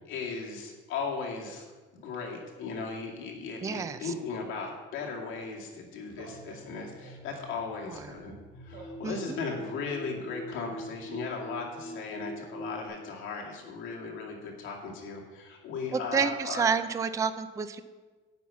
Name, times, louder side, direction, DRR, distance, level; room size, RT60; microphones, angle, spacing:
voice 1, 0.1-1.7 1.9-16.7, left 4 dB, 75° left, -1 dB, 2.3 m, -37 dB
voice 2, 3.6-4.1 7.9-8.0 9.0-9.4 15.9-17.8, right 6 dB, 15° right, 11 dB, 0.3 m, -29 dB
Laughter, 6.0-7.7 8.7-9.9, right 5 dB, 85° right, 3.8 m, -51 dB
sound 1, 6.1-12.9, equal, 20° left, 1.6 m, -44 dB
9.3 x 5.7 x 8.3 m, 1.3 s
cardioid pair, 175°, 21 cm